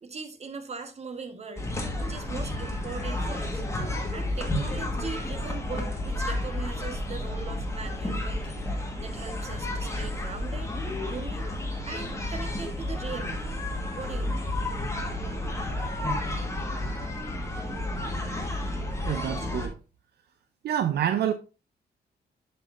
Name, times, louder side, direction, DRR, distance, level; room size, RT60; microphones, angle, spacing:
voice 1, 0.0-1.7 2.0-3.6 4.1-10.7 11.1-11.5 11.9-13.6 13.9-14.5, right 4 dB, 40° right, 1.2 m, -40 dB
sound 1, 1.6-19.7, left 1 dB, 15° left, 1.5 m, -31 dB
voice 2, 19.1-19.7 20.6-21.3, right 9 dB, 70° right, 0.6 m, -27 dB
7.6 x 6.8 x 2.5 m
cardioid pair, 130°, 17 cm